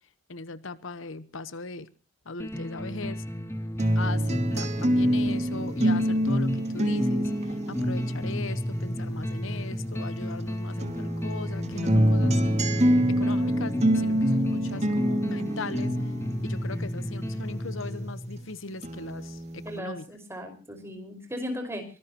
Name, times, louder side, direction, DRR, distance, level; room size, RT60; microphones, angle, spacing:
voice 1, 0.3-1.9 2.3-3.2 4.0-7.3 7.7-12.3 13.2-15.9 16.4-20.1, left 3 dB, 75° left, 15 dB, 1.0 m, -39 dB
sound 1, 2.4-18.3, equal, 15° left, 2.9 m, -32 dB
sound 2, 3.8-10.4 10.8-18.4 18.8-19.8, equal, 35° right, 2.5 m, -27 dB
Bass guitar, 11.7-18.0, left 6 dB, 70° right, 7.6 m, -42 dB
voice 2, 19.6-21.8, equal, 15° right, 5 dB, 4.8 m, -36 dB
24.0 x 18.5 x 2.9 m, 0.36 s
head